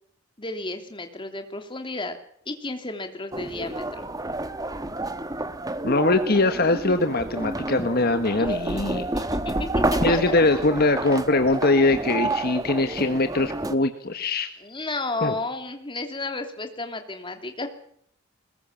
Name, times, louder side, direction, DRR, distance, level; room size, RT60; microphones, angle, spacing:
voice 1, 0.4-2.2 2.5-4.1 8.4-8.8 9.1-9.5 9.9-10.3 14.6-17.7, left 2 dB, 25° left, 6 dB, 2.8 m, -32 dB
sound 1, 3.3-13.8, right 2 dB, 15° right, 1.2 m, -29 dB
voice 2, 5.8-9.0 10.0-14.5 15.2-15.3, left 2 dB, 50° left, 8 dB, 1.5 m, -22 dB
22.0 x 20.5 x 7.3 m, 0.67 s
head